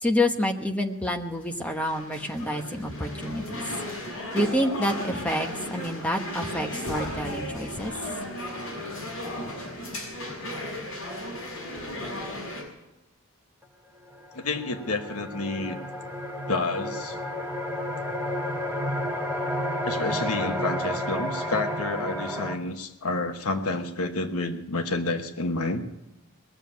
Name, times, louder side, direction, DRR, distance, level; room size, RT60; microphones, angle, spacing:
voice 1, 0.0-3.6 4.3-7.9, left 1 dB, 5° left, 3 dB, 1.0 m, -28 dB
sound 1, 1.3-12.6, left 1 dB, 65° left, 6.2 m, -35 dB
sound 2, 13.6-13.7 14.1-22.6, equal, 10° right, 1.5 m, -31 dB
voice 2, 14.3-15.8 16.5-17.2 19.8-25.8, left 3 dB, 85° left, 6 dB, 1.2 m, -29 dB
20.5 x 7.2 x 9.4 m, 0.96 s
head